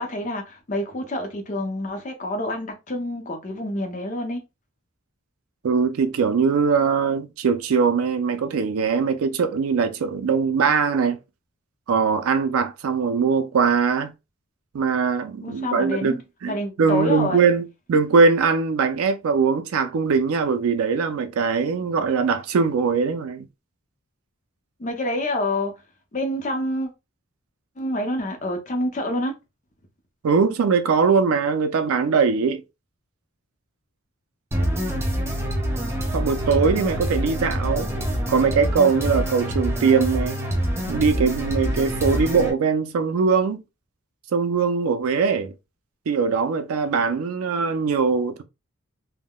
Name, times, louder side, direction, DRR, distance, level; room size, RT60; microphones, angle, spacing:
voice 1, 0.0-4.4 15.4-16.2 16.5-17.4 24.8-25.7 26.1-26.9 27.8-29.3, left 1 dB, 35° left, 0.6 m, -27 dB
voice 2, 5.6-11.2 11.9-14.1 14.7-23.5 30.2-32.6 36.1-37.9 38.3-40.4 40.9-43.6 44.3-45.5 46.1-48.4, right 5 dB, 90° right, 0.4 m, -21 dB
sound 1, 34.5-42.5, equal, 10° right, 0.5 m, -26 dB
3.5 x 2.1 x 2.2 m
head